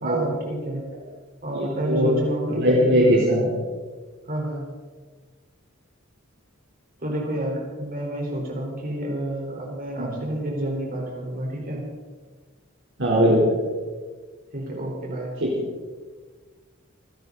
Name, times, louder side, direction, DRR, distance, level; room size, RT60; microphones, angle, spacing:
voice 1, 0.0-0.8 1.4-3.2 4.3-4.7 7.0-11.8 14.5-15.3, right 1 dB, 45° right, -2 dB, 4.8 m, -29 dB
voice 2, 1.5-2.1 2.6-3.5 10.0-10.2 13.0-13.5 15.4-15.5, equal, 65° right, -4 dB, 4.0 m, -20 dB
29.0 x 11.0 x 4.2 m, 1.4 s
head